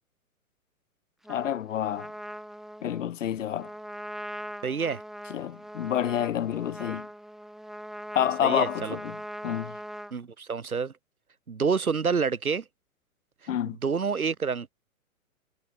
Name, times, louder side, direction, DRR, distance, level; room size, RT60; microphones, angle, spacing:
Trumpet, 1.2-10.1, equal, ahead, 3.4 m, -41 dB
voice 1, 1.3-2.1 2.8-3.7 5.3-7.1 8.1-9.2 9.4-9.7 13.5-13.8, left 10 dB, 60° left, 1.1 m, -28 dB
voice 2, 4.6-5.0 8.4-9.0 10.1-10.9 11.5-12.6 13.6-14.7, right 5 dB, 80° right, 2.0 m, -28 dB
figure-of-eight pair, 115°, 43 cm